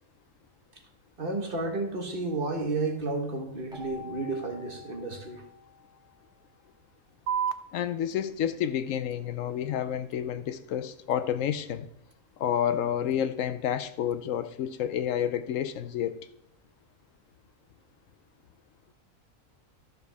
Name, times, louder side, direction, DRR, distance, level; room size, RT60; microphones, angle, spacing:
voice 1, 1.2-5.4, right 3 dB, 45° right, 3 dB, 1.4 m, -32 dB
Keyboard (musical), 3.7-6.3, left 5 dB, 5° right, 1.5 m, -48 dB
sound 1, 7.3-14.3, right 8 dB, 60° right, 0.6 m, -40 dB
voice 2, 7.7-11.9 12.4-16.1, left 9 dB, 75° left, 12 dB, 1.0 m, -29 dB
13.0 x 6.7 x 3.5 m, 0.72 s
omnidirectional pair, 1.4 m